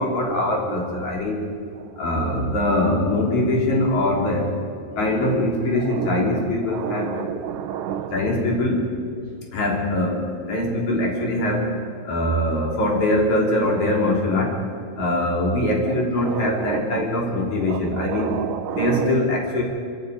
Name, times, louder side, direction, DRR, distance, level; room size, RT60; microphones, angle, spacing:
voice 1, 0.0-1.4 2.0-4.5 5.0-7.1 8.1-8.9 9.5-11.7 12.0-14.6 15.0-18.3 18.7-19.6, left 1 dB, 45° left, 0 dB, 4.0 m, -22 dB
voice 2, 6.7-8.1 16.2-17.0 17.7-19.1, right 11 dB, 80° right, 4 dB, 2.9 m, -29 dB
27.5 x 10.5 x 9.2 m, 2.3 s
omnidirectional pair, 5.3 m